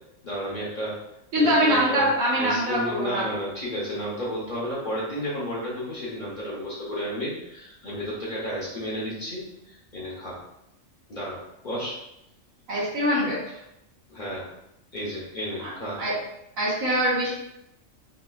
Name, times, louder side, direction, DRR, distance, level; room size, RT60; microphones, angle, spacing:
voice 1, 0.2-1.0 1.4-2.1 2.3-10.4 11.1-12.0 14.1-14.5 14.9-16.0, equal, 45° left, -7 dB, 0.7 m, -32 dB
voice 2, 1.3-3.3 12.7-13.4 15.6-15.7 16.0-16.1 16.6-17.3, equal, 80° right, -6 dB, 1.5 m, -23 dB
4.0 x 2.3 x 2.2 m, 0.83 s
omnidirectional pair, 1.4 m